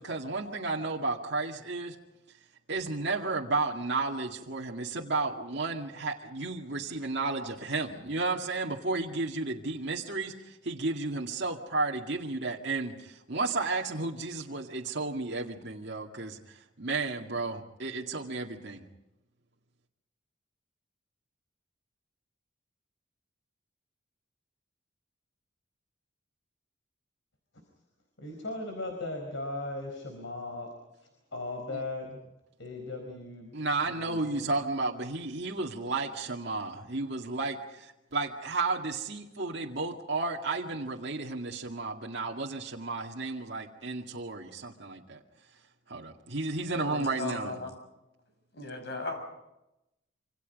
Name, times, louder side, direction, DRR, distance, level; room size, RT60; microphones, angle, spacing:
voice 1, 0.0-2.0 2.7-18.8 31.7-31.8 33.5-45.2 45.9-47.6, right 3 dB, 60° right, -2 dB, 2.1 m, -33 dB
voice 2, 28.2-30.7 31.3-32.2 32.6-33.5 33.8-34.5, left 2 dB, 80° left, 4 dB, 4.5 m, -38 dB
voice 3, 46.7-47.7 48.5-49.2, left 2 dB, 60° left, 7 dB, 6.3 m, -37 dB
27.0 x 26.0 x 5.3 m, 0.90 s
head